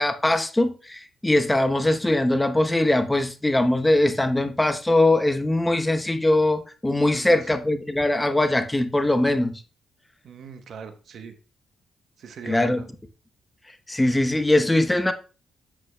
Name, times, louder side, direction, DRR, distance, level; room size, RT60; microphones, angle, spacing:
voice 1, 0.0-9.6 12.5-12.8 13.9-15.1, left 1 dB, 15° left, 0.9 m, -21 dB
voice 2, 10.2-11.3 12.2-12.9, right 6 dB, 70° right, 1.0 m, -40 dB
8.1 x 8.0 x 2.3 m
supercardioid pair, 65°, 0 cm